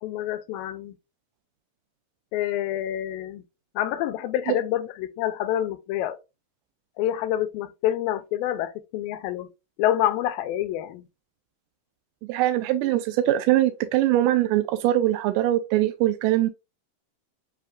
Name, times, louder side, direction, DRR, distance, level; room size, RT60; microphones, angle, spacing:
voice 1, 0.0-0.9 2.3-3.4 3.8-6.2 7.0-9.5 9.8-11.0, left 12 dB, 85° left, 2.3 m, -27 dB
voice 2, 12.3-16.5, right 14 dB, 80° right, 1.9 m, -22 dB
7.5 x 2.7 x 2.2 m
omnidirectional pair, 4.1 m